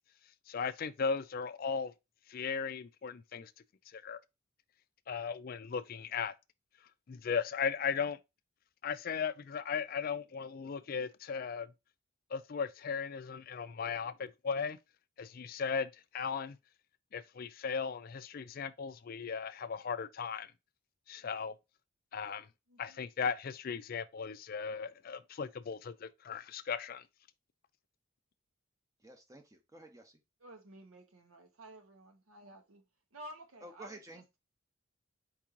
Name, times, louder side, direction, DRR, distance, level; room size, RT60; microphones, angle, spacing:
voice 1, 0.5-1.9 2.3-3.5 3.9-4.2 5.1-6.3 7.1-8.2 8.8-11.7 12.3-14.8 15.2-16.6 17.1-20.5 21.1-21.5 22.1-22.5 22.8-27.0, left 6 dB, 45° left, 0.4 m, -37 dB
voice 2, 22.7-23.0 30.4-32.8 33.1-34.2, right 1 dB, 85° right, 1.1 m, -52 dB
voice 3, 29.0-30.2 33.6-34.2, right 1 dB, 15° right, 0.8 m, -51 dB
4.6 x 3.0 x 3.7 m
head